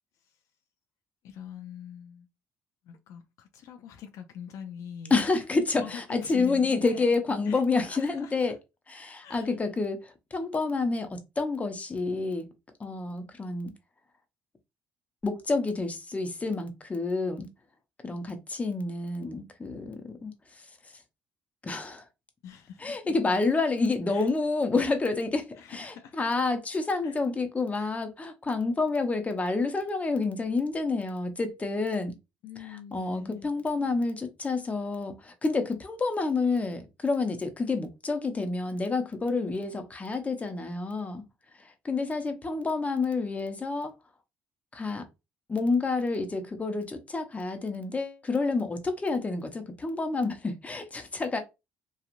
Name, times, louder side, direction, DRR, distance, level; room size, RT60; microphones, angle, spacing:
voice 1, 1.2-2.3 2.8-5.2 5.8-7.1 7.5-8.4 9.2-9.5 22.4-23.0 24.1-24.3 25.6-26.2 27.0-27.2 27.7-27.9 32.4-33.5, left 8 dB, 70° left, 0.4 m, -44 dB
voice 2, 5.1-8.5 8.9-12.5 12.8-13.7 15.2-17.5 18.0-20.9 21.6-22.1 22.8-32.1 32.6-41.2 41.6-43.9 44.7-45.1 45.5-51.4, left 3 dB, 25° left, 0.8 m, -29 dB
2.9 x 2.4 x 2.5 m
hypercardioid pair, 65°, 6 cm